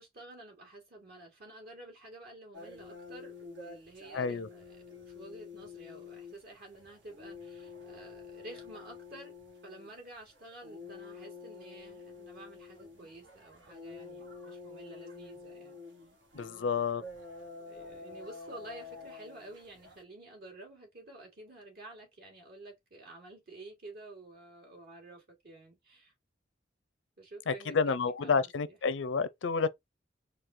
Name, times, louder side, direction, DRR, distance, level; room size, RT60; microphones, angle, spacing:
voice 1, 0.0-9.3 9.6-15.8 17.7-26.1 27.2-28.8, right 2 dB, 60° right, 2.7 m, -50 dB
sound 1, 2.5-20.0, left 4 dB, 75° right, 1.6 m, -49 dB
voice 2, 4.1-4.5 16.4-17.0 27.5-29.7, left 5 dB, 85° left, 0.5 m, -30 dB
4.6 x 2.4 x 3.7 m
head